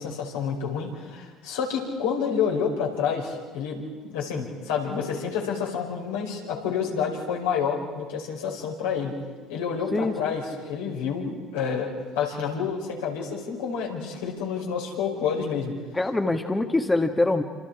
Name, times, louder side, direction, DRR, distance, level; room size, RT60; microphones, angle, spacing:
voice 1, 0.0-9.1 9.5-15.7, left 6 dB, 85° left, -2 dB, 5.1 m, -29 dB
voice 2, 9.9-10.4 15.9-17.4, left 2 dB, 15° left, 5 dB, 1.7 m, -24 dB
27.0 x 27.0 x 4.9 m, 1.5 s
hypercardioid pair, 70°, 0 cm